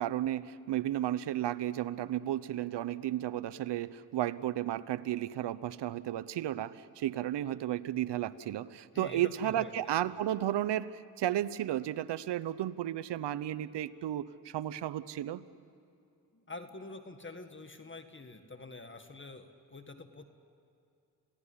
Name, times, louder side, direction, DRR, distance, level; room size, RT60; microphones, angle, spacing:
voice 1, 0.0-15.4, right 12 dB, 75° right, 14 dB, 0.9 m, -33 dB
voice 2, 8.9-9.7 16.3-20.2, left 3 dB, 25° left, 7 dB, 1.9 m, -46 dB
27.0 x 17.5 x 9.9 m, 2.5 s
cardioid pair, 60°, 42 cm